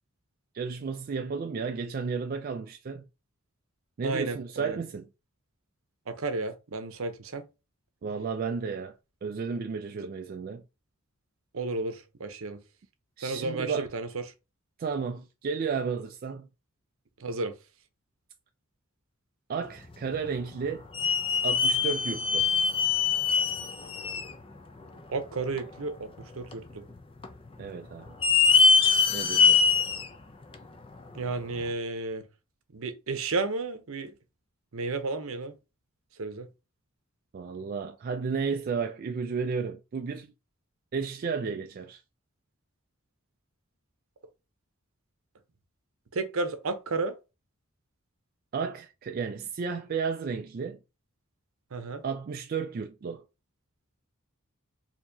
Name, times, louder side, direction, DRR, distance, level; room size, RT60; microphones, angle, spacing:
voice 1, 0.5-3.0 4.0-5.1 8.0-10.6 13.2-13.9 14.8-16.5 19.5-20.9 21.4-22.5 27.6-28.2 29.1-29.6 37.3-40.3 40.9-42.0 48.5-50.8 52.0-53.2, right 5 dB, 45° right, 0.3 m, -33 dB
voice 2, 4.0-4.8 6.1-7.4 11.5-12.6 13.2-14.2 17.2-17.5 25.1-26.8 31.1-32.2 32.7-34.1 34.7-35.5 36.2-36.5 46.1-47.2 51.7-52.0, right 3 dB, 70° right, 0.7 m, -32 dB
sound 1, 20.1-20.3 20.9-24.3 24.8-24.9 25.6-25.7 26.5-27.0 27.2-27.3 28.1-30.1 30.5-30.6 31.6-31.7, left 5 dB, 25° left, 0.4 m, -23 dB
4.5 x 2.8 x 2.7 m
head